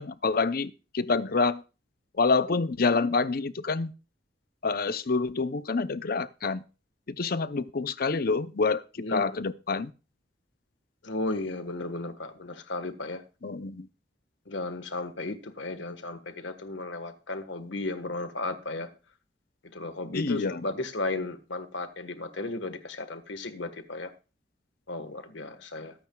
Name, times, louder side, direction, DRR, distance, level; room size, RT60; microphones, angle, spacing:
voice 1, 0.0-1.6 2.2-3.9 4.6-6.6 7.1-8.8 9.1-9.9 13.4-13.9 20.1-20.6, left 4 dB, 55° left, 0.6 m, -27 dB
voice 2, 11.0-13.2 14.5-18.9 19.7-24.1 24.9-25.9, left 2 dB, 80° left, 1.4 m, -34 dB
22.5 x 8.9 x 2.3 m
head